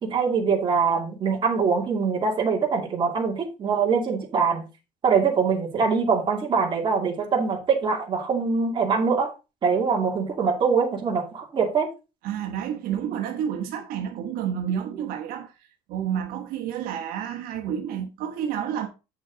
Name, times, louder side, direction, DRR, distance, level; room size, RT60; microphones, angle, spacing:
voice 1, 0.0-4.6 5.0-9.3 9.6-11.9, right 5 dB, 30° right, 2.4 m, -23 dB
voice 2, 12.2-15.5 15.9-18.9, right 9 dB, 75° right, 1.3 m, -30 dB
8.1 x 6.1 x 4.0 m
cardioid pair, 165°, 15 cm